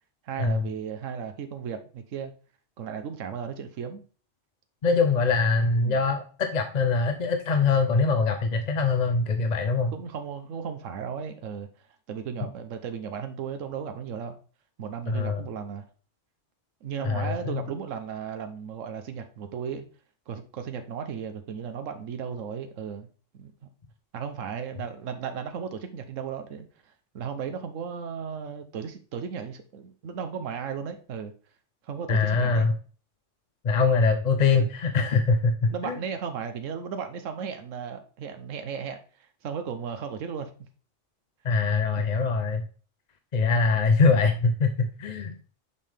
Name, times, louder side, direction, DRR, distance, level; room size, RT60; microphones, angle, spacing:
voice 1, 0.3-2.3 2.8-4.0 5.8-6.0 9.9-11.7 12.1-14.4 14.8-15.9 16.8-19.8 20.3-23.1 23.3-23.5 24.1-26.7 27.1-31.3 31.8-32.7 34.6-34.7 35.7-40.5 42.0-42.1, right 7 dB, 80° right, 7 dB, 1.2 m, -35 dB
voice 2, 4.8-9.9 15.1-15.4 17.0-17.6 32.1-32.7 33.6-36.0 41.4-42.6 43.3-45.4, left 4 dB, 45° left, 6 dB, 0.6 m, -23 dB
6.4 x 5.5 x 3.4 m, 0.39 s
omnidirectional pair, 1.3 m